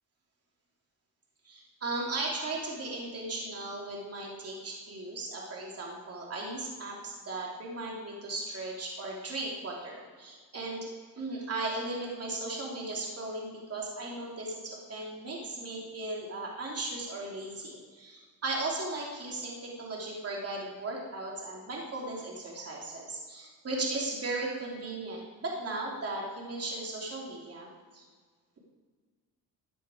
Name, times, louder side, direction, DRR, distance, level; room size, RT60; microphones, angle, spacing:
voice 1, 1.4-10.9 11.2-28.1, right 2 dB, 40° right, -2 dB, 3.1 m, -37 dB
14.5 x 9.3 x 5.0 m, 1.6 s
cardioid pair, 90°, 38 cm